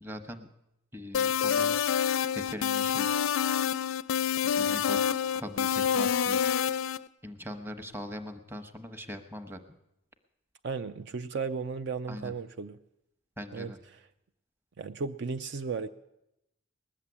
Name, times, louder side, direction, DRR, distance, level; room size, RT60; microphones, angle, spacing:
voice 1, 0.0-0.5 0.9-1.8 2.3-3.3 4.6-5.0 5.3-6.4 7.2-9.6 12.1-12.3 13.4-13.8, left 1 dB, 10° right, 7 dB, 1.0 m, -41 dB
sound 1, 1.1-7.0, left 8 dB, 85° left, 0.5 m, -27 dB
voice 2, 10.6-12.8 13.5-13.7 14.8-15.9, right 5 dB, 55° right, 9 dB, 0.5 m, -35 dB
19.5 x 7.4 x 9.7 m, 0.86 s
head